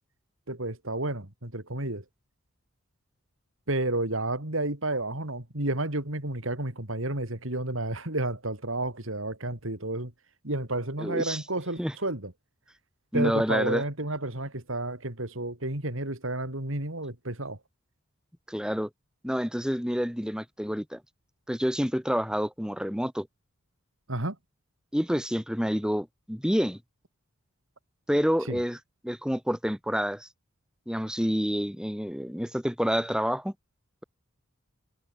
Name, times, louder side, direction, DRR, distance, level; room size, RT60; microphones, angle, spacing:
voice 1, 0.5-2.0 3.7-10.1 10.4-12.3 13.1-17.6 24.1-24.4 28.5-28.6, right 2 dB, 65° right, 3.8 m, -31 dB
voice 2, 11.0-11.4 11.8-11.9 13.1-13.8 18.5-18.9 19.2-21.0 21.5-23.3 24.9-26.8 28.1-28.8 29.0-30.3 30.9-33.5, equal, 5° right, 6.6 m, -28 dB
head